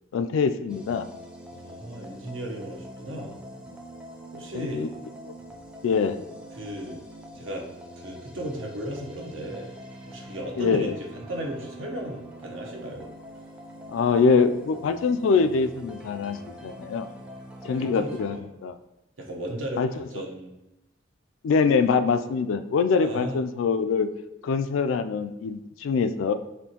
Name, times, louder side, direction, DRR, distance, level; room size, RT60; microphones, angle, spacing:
voice 1, 0.1-1.1 4.5-4.9 5.3-5.4 5.8-6.2 10.6-11.0 13.9-17.1 17.6-18.8 19.8-20.1 21.4-24.1 24.4-26.3, left 5 dB, 90° left, 10 dB, 0.3 m, -24 dB
sound 1, 0.7-18.4, equal, 5° right, 0.4 m, -44 dB
voice 2, 1.5-3.4 4.3-4.8 6.6-7.0 7.3-7.6 8.0-9.7 10.1-13.1 17.6-18.4 19.2-20.6 23.0-23.3, right 1 dB, 85° right, 1 dB, 0.8 m, -35 dB
4.3 x 3.1 x 2.8 m, 0.96 s
head